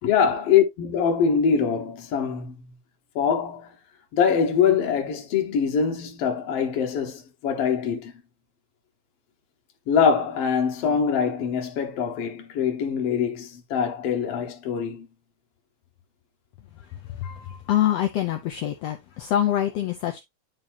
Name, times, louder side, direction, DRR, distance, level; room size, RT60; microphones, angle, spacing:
voice 1, 0.0-2.6 3.2-3.7 4.1-8.1 9.9-15.1 17.2-17.6, left 7 dB, 60° left, 2.1 m, -23 dB
voice 2, 16.8-20.2, left 12 dB, 75° left, 1.5 m, -26 dB
10.0 x 4.3 x 2.7 m
omnidirectional pair, 3.6 m